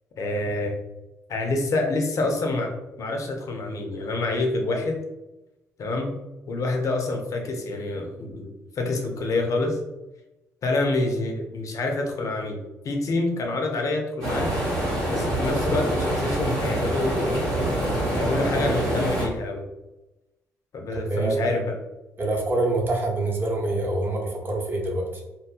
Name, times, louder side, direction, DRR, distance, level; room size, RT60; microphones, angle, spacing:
voice 1, 0.2-0.7 1.3-2.7 3.0-5.0 5.8-6.2 6.5-9.8 10.6-12.6 12.8-14.5 15.1-17.5 18.2-19.6 20.7-21.7, left 2 dB, 45° left, 3 dB, 0.5 m, -27 dB
sound 1, 14.2-19.3, right 1 dB, 80° right, 0.9 m, -25 dB
voice 2, 20.9-21.5 22.2-25.2, right 2 dB, 25° right, -1 dB, 0.7 m, -26 dB
2.5 x 2.3 x 2.4 m, 0.98 s
figure-of-eight pair, 45°, 8 cm